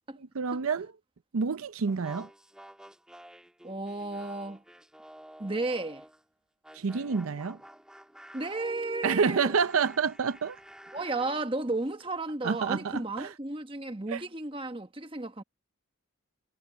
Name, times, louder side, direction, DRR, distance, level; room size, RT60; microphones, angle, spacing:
voice 1, 0.3-0.9 1.3-2.3 6.7-7.6 9.0-10.6 12.4-13.3 14.1-14.2, right 5 dB, 75° right, 0.6 m, -28 dB
sound 1, 1.9-6.2 6.6-11.5, equal, 5° right, 1.4 m, -49 dB
voice 2, 3.6-4.6 5.4-6.0 8.3-9.5 10.9-15.4, right 2 dB, 25° right, 1.2 m, -33 dB
sound 2, 8.4-12.2 12.5-12.6, right 3 dB, 45° right, 7.4 m, -68 dB
head